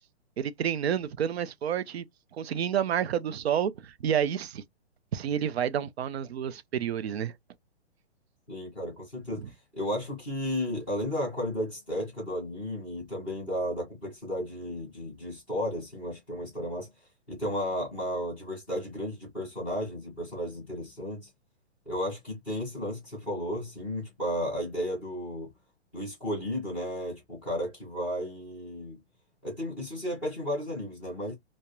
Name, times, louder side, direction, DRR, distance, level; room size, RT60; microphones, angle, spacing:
voice 1, 0.4-2.1 2.3-4.6 5.1-7.4 9.4-9.5, right 9 dB, 70° right, 0.5 m, -29 dB
voice 2, 8.5-16.9 17.3-21.3 21.8-25.5 25.9-29.0 29.4-31.3, equal, 5° right, 0.6 m, -33 dB
2.2 x 2.1 x 2.8 m
hypercardioid pair, 175°, 33 cm